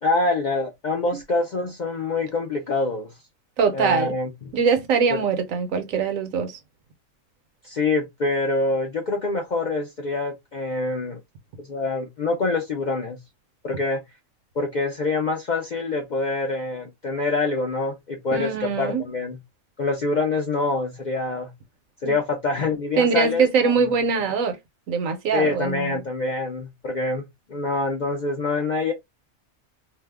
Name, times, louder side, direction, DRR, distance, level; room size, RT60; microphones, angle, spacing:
voice 1, 0.0-3.1 3.7-4.5 5.1-5.2 7.6-11.2 11.6-13.2 13.6-14.0 14.6-19.4 19.8-21.5 22.0-23.9 25.3-27.2 27.5-28.9, left 3 dB, 60° left, 0.4 m, -25 dB
voice 2, 3.6-4.2 4.5-6.5 18.3-19.0 22.0-22.2 23.0-24.6 24.9-25.9, right 5 dB, 75° right, 1.1 m, -22 dB
2.7 x 2.1 x 3.4 m
omnidirectional pair, 1.4 m